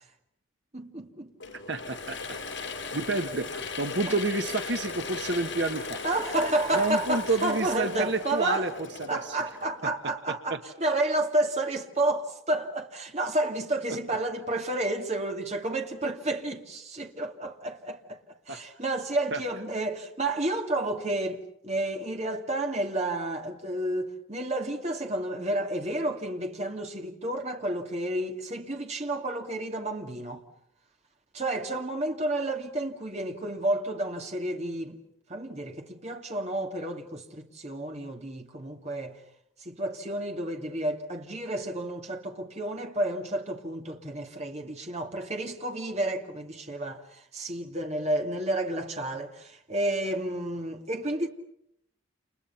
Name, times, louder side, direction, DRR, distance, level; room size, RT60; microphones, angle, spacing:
voice 1, 0.7-1.3 6.0-8.7 9.1-18.2 18.5-30.4 31.3-35.0 35.3-39.2 39.6-51.3, right 1 dB, 35° right, 2.5 m, -31 dB
Mechanisms / Drill, 1.4-10.0, left 4 dB, 65° left, 7.7 m, -38 dB
voice 2, 1.7-2.6 2.9-6.0 6.8-8.7 9.0-9.4 18.5-18.6 19.3-19.4, right 3 dB, 60° right, 1.6 m, -29 dB
30.0 x 29.5 x 5.9 m
head